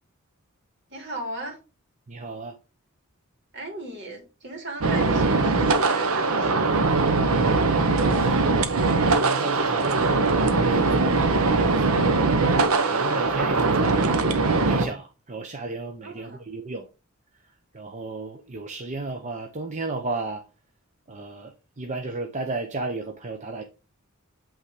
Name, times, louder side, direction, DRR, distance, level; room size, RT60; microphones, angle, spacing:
voice 1, 0.9-1.6 3.5-7.0 16.0-16.4, right 2 dB, 55° right, 2.8 m, -37 dB
voice 2, 2.1-2.6 8.1-8.6 9.1-12.2 12.9-16.9 17.7-20.5 21.1-23.6, right 2 dB, 35° right, 0.7 m, -33 dB
sound 1, 4.8-14.9, right 3 dB, 80° right, 0.9 m, -21 dB
8.2 x 3.7 x 4.8 m
head